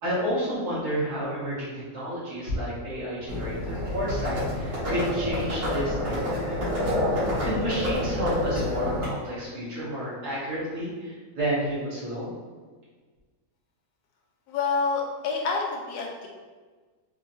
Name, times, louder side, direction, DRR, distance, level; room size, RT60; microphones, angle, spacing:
voice 1, 0.0-6.6 7.4-12.3, equal, 75° right, -8 dB, 2.0 m, -30 dB
Livestock farm animals working animals, 3.3-9.1, left 1 dB, 40° right, 1.9 m, -28 dB
voice 2, 14.5-16.3, left 4 dB, 90° left, -1 dB, 1.3 m, -28 dB
4.6 x 2.7 x 2.7 m, 1.4 s
omnidirectional pair, 1.7 m